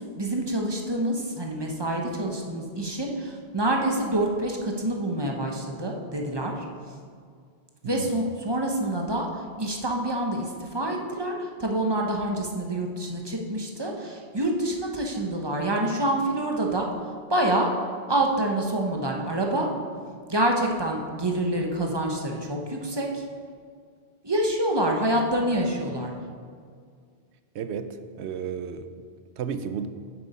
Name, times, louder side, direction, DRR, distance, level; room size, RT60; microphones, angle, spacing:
voice 1, 0.0-6.6 7.8-16.9 17.3-17.7 18.1-19.7 20.3-23.2 24.2-26.1, right 1 dB, 25° right, 1 dB, 0.9 m, -27 dB
voice 2, 7.8-8.2 27.5-28.9 29.4-29.9, right 7 dB, 80° right, 10 dB, 0.9 m, -33 dB
8.9 x 7.9 x 4.2 m, 2.1 s
omnidirectional pair, 1.1 m